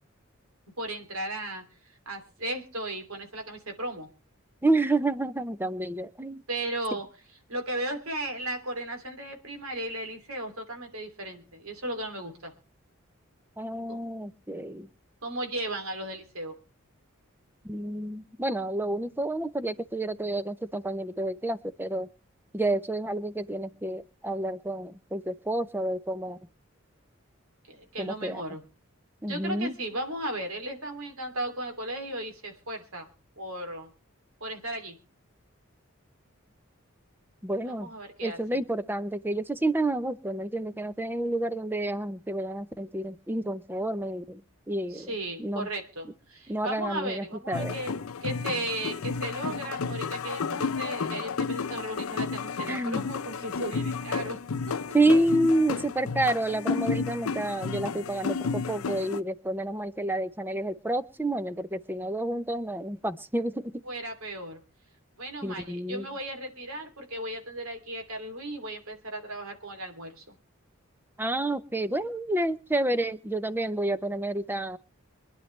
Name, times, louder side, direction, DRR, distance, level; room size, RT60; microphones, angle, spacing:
voice 1, 0.8-1.6 2.1-4.1 6.5-7.1 7.5-12.5 13.9-14.0 15.2-16.5 27.7-28.6 29.3-33.1 33.4-33.9 34.4-35.0 37.6-38.6 44.9-54.4 63.8-64.6 65.2-70.3, right 1 dB, 85° right, 4 dB, 3.0 m, -36 dB
voice 2, 4.6-6.4 13.6-14.9 17.6-22.1 22.5-26.4 28.0-28.4 29.2-29.7 37.4-37.9 38.2-44.4 44.7-45.1 45.4-45.7 46.5-47.7 52.7-53.0 54.9-63.7 65.4-66.1 71.2-74.8, right 1 dB, 10° right, 13 dB, 0.7 m, -29 dB
sound 1, 47.5-59.2, left 5 dB, 90° left, 0.6 m, -32 dB
24.5 x 10.5 x 3.3 m, 0.33 s
head